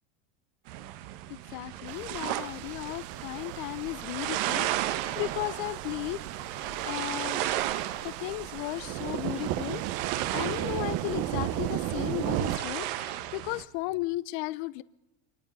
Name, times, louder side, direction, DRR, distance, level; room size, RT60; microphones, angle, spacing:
sound 1, 0.7-13.6, right 13 dB, 60° right, 1.3 m, -35 dB
voice 1, 1.3-6.2 6.6-7.4 8.0-9.8 10.3-14.8, left 19 dB, 55° left, 18 dB, 0.7 m, -35 dB
sound 2, 1.9-12.6, right 13 dB, 45° right, 0.9 m, -35 dB
24.5 x 20.0 x 5.4 m, 0.89 s
supercardioid pair, 155°, 35 cm